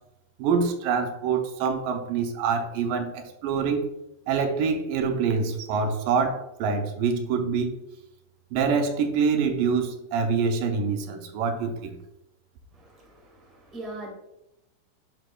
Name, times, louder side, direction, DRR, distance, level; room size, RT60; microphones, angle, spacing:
voice 1, 0.4-3.9 4.3-7.7 8.5-12.0, right 5 dB, 85° right, 5 dB, 2.3 m, -25 dB
voice 2, 12.7-14.1, right 2 dB, ahead, -2 dB, 1.0 m, -41 dB
11.0 x 5.0 x 2.3 m, 0.86 s
omnidirectional pair, 3.9 m